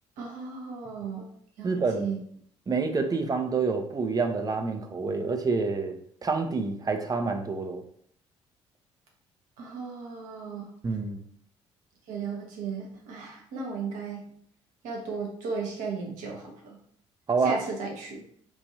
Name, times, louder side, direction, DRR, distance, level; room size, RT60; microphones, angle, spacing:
voice 1, 0.2-1.3 1.6-2.2 9.6-10.7 12.1-14.2 14.8-16.8 17.4-18.2, right 4 dB, 60° right, 0 dB, 1.0 m, -35 dB
voice 2, 1.6-2.2 2.7-6.0 6.2-7.8 10.8-11.2 17.3-17.6, right 4 dB, 25° right, 5 dB, 0.6 m, -27 dB
4.6 x 2.6 x 2.7 m, 0.64 s
figure-of-eight pair, 50°, 15 cm